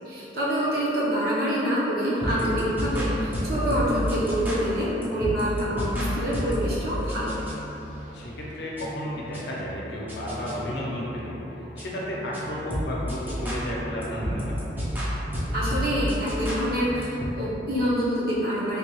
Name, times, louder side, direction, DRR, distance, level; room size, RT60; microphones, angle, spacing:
voice 1, 0.1-7.4 15.5-18.8, equal, 55° right, -8 dB, 0.7 m, -26 dB
sound 1, 2.2-17.3, equal, 10° right, 0.4 m, -31 dB
voice 2, 8.1-11.3 11.8-14.6, equal, 60° left, -5 dB, 0.6 m, -33 dB
3.4 x 2.2 x 2.9 m, 3.0 s
head